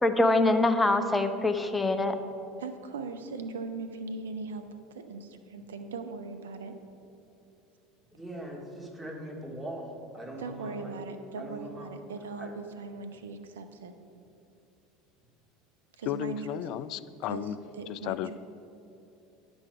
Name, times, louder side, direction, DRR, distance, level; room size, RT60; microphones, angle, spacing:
voice 1, 0.0-2.1, left 2 dB, 15° left, 8 dB, 0.7 m, -24 dB
voice 2, 2.6-4.6 4.9-6.8 10.4-13.9 16.0-16.6 17.2-18.4, right 4 dB, 80° right, 8 dB, 0.6 m, -39 dB
voice 3, 8.1-9.9 10.1-11.0 11.4-11.9 12.4-12.5, right 1 dB, 10° right, -1 dB, 2.1 m, -41 dB
voice 4, 16.1-17.6 17.9-18.4, left 12 dB, 55° left, 15 dB, 0.3 m, -34 dB
9.9 x 6.3 x 4.8 m, 2.8 s
hypercardioid pair, 75°, 0 cm